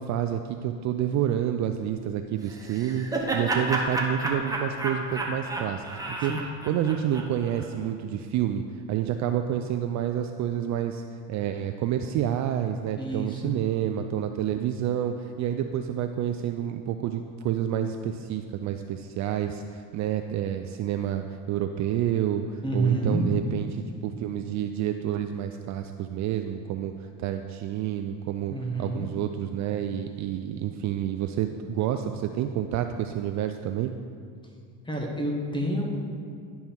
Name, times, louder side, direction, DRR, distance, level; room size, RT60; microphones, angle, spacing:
voice 1, 0.0-6.3 6.7-8.6 8.9-11.0 11.3-28.5 28.8-33.9, right 10 dB, 45° right, 6 dB, 0.4 m, -29 dB
Laughter, 2.5-7.6, right 2 dB, 10° right, 1.0 m, -31 dB
voice 2, 13.0-13.5 22.6-23.4 28.5-29.1 34.8-36.0, right 2 dB, 10° left, 0 dB, 1.3 m, -28 dB
11.0 x 5.5 x 4.5 m, 2.2 s
supercardioid pair, 110°, 41 cm